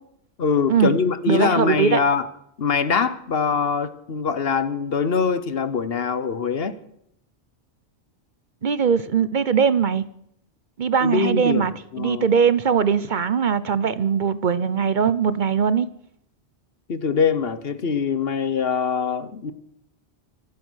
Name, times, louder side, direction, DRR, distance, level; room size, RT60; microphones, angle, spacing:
voice 1, 0.4-2.3 2.6-6.8 11.0-12.3 16.9-19.5, left 5 dB, 65° left, 1.3 m, -23 dB
voice 2, 1.3-2.0 8.6-10.0 10.8-11.7 12.0-15.9, right 7 dB, 50° right, 0.8 m, -20 dB
25.5 x 8.7 x 6.4 m
omnidirectional pair, 1.1 m